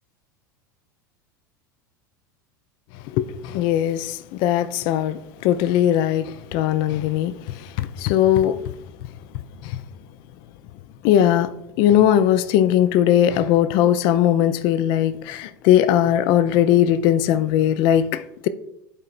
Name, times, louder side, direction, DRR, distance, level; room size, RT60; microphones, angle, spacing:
voice 1, 3.1-8.6 9.6-9.8 11.0-18.5, left 11 dB, 45° left, 0.4 m, -19 dB
11.5 x 4.7 x 2.4 m
figure-of-eight pair, 80°, 11 cm